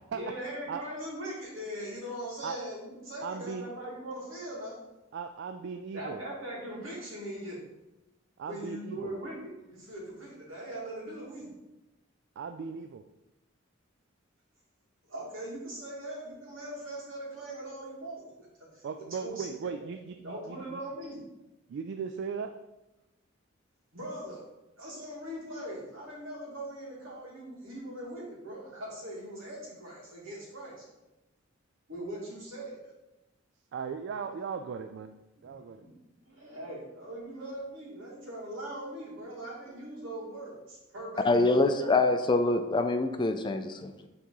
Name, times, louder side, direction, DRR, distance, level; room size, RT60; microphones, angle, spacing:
voice 1, 0.1-4.7 5.9-7.6 8.5-9.4 9.7-11.5 15.1-18.2 18.7-19.8 20.2-21.2 23.9-24.5 24.8-30.8 31.9-32.8 35.8-35.9 36.2-41.9, right 1 dB, 90° right, -5 dB, 2.4 m, -40 dB
voice 2, 3.2-3.7 5.1-6.2 8.4-9.1 12.4-13.0 18.8-20.8 21.7-22.6 33.7-35.2 35.4-35.8, right 6 dB, 60° right, 7 dB, 0.3 m, -37 dB
voice 3, 41.2-43.9, left 2 dB, 25° left, 8 dB, 0.4 m, -25 dB
5.8 x 4.0 x 4.7 m, 0.99 s
head